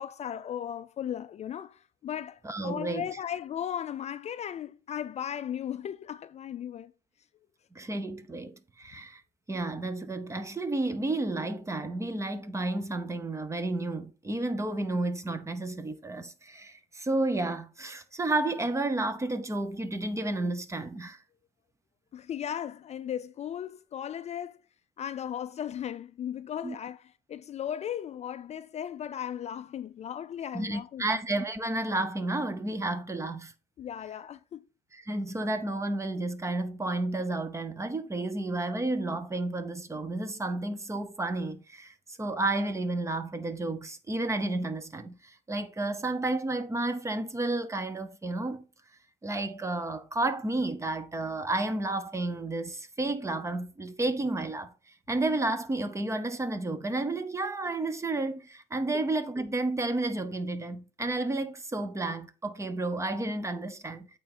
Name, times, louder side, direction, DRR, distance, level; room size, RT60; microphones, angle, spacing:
voice 1, 0.0-6.9 22.1-24.6 25.0-31.2 33.8-34.6, left 9 dB, 40° left, 0.4 m, -36 dB
voice 2, 2.4-3.1 7.7-9.2 9.5-21.2 26.6-26.7 30.5-33.5 34.9-48.6 49.2-54.7 55.1-64.1, right 2 dB, 15° right, 0.8 m, -31 dB
8.5 x 3.8 x 4.2 m
cardioid pair, 110°, 17 cm